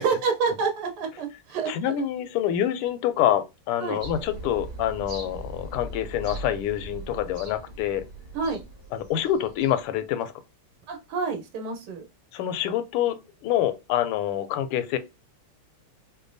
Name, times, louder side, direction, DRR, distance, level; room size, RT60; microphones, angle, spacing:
voice 1, 0.0-2.1 3.8-4.0 8.3-8.6 10.9-12.0, right 5 dB, 85° right, 1.7 m, -28 dB
voice 2, 1.7-8.0 8.9-10.3 12.3-13.2 13.4-15.0, left 11 dB, 80° left, 1.5 m, -26 dB
sound 1, 4.0-9.9 10.2-10.3, right 2 dB, 40° right, 2.0 m, -40 dB
5.2 x 2.2 x 2.5 m
omnidirectional pair, 2.4 m